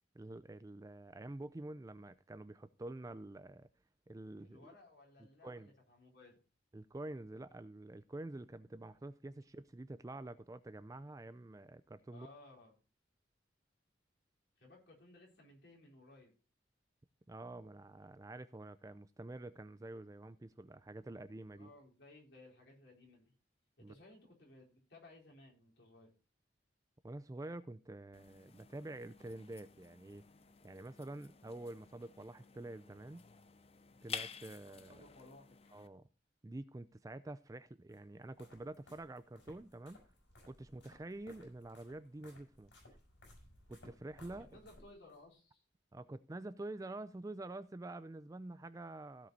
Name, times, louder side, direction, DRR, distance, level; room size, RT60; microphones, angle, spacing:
voice 1, 0.1-3.7 4.1-4.8 5.2-5.7 6.7-12.3 17.3-21.7 23.8-23.9 27.0-30.2 30.6-33.2 34.0-35.0 35.7-36.0 36.4-40.0 40.5-42.7 43.7-44.6 45.9-49.3, right 2 dB, 20° right, 0.4 m, -48 dB
voice 2, 4.4-6.4 12.1-12.7 14.6-16.3 21.5-23.3 23.8-26.1 34.6-35.6 44.5-45.6, left 2 dB, 60° left, 4.1 m, -59 dB
sound 1, 28.1-35.9, left 7 dB, 35° left, 0.6 m, -51 dB
sound 2, 37.9-45.2, left 1 dB, 75° left, 5.9 m, -61 dB
16.0 x 5.4 x 4.0 m
head